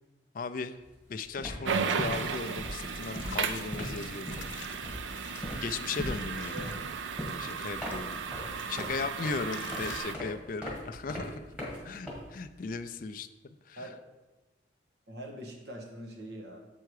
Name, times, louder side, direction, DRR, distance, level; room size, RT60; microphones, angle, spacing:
voice 1, 0.3-0.8 1.1-4.4 5.6-6.7 7.4-8.2 8.7-11.4 11.8-13.8, left 4 dB, 45° left, 9 dB, 0.3 m, -37 dB
sound 1, 0.8-1.0 1.2-12.7, equal, 5° right, 1.7 m, -40 dB
sound 2, 1.6-10.2, right 6 dB, 80° right, 0.5 m, -35 dB
sound 3, 2.1-8.9 9.5-10.0, left 6 dB, 85° left, 0.7 m, -49 dB
voice 2, 6.2-7.0 11.8-12.2 13.8-14.0 15.1-16.7, right 1 dB, 60° right, 0 dB, 1.3 m, -44 dB
7.7 x 4.6 x 4.7 m, 1.1 s
head